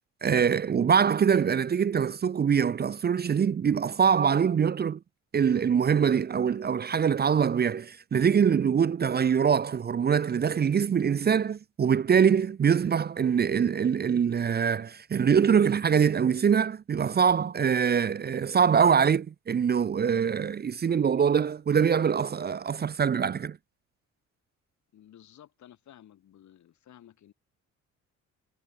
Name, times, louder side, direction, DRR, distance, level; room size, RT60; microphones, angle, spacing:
voice 1, 0.2-5.0 5.3-23.6, right 7 dB, 35° right, 0.6 m, -24 dB
voice 2, 24.9-27.3, left 11 dB, 70° left, 4.0 m, -54 dB
cardioid pair, 90°, 30 cm